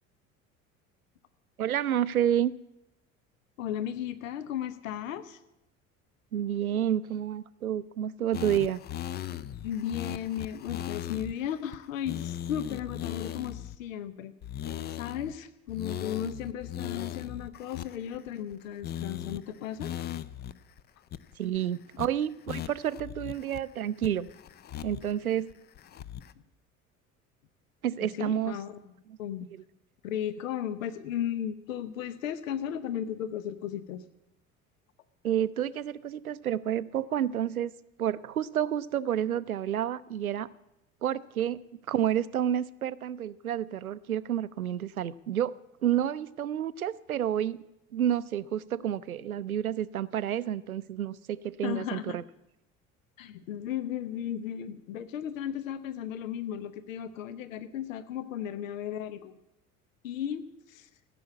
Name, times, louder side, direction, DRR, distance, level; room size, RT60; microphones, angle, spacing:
voice 1, 1.6-2.5 6.3-8.8 21.4-24.3 24.8-25.5 27.8-28.6 35.2-37.7 38.0-40.5 41.0-41.6 41.9-45.5 45.8-47.6 47.9-52.2, right 10 dB, 85° right, 19 dB, 0.5 m, -29 dB
voice 2, 3.6-5.4 9.6-14.3 15.0-19.9 28.0-28.9 29.2-29.5 30.0-34.0 51.6-52.2 53.2-59.4 60.0-60.9, left 10 dB, 65° left, 13 dB, 0.9 m, -35 dB
sound 1, 8.3-11.3 11.7-11.8 12.1-13.8 14.4-15.3 15.7-18.5 18.8-19.4 19.8-20.5 20.8-20.9 21.1-21.6 22.0-22.1 22.5-23.6 24.0-25.1 25.5-26.3, left 11 dB, 25° left, 0.5 m, -38 dB
15.5 x 7.0 x 8.3 m, 0.90 s
figure-of-eight pair, 65°, 42 cm